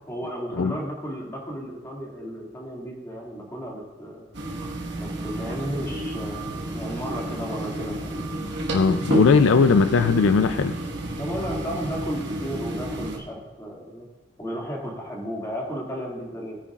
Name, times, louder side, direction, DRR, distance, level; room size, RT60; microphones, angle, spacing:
voice 1, 0.1-4.3 5.0-8.3 11.2-14.1 14.4-16.6, equal, 15° left, -3 dB, 2.2 m, -34 dB
sound 1, 4.3-13.2, right 1 dB, 55° right, 1.5 m, -31 dB
voice 2, 8.7-10.8, left 5 dB, 70° left, 11 dB, 0.4 m, -19 dB
17.5 x 9.8 x 2.4 m, 1.2 s
head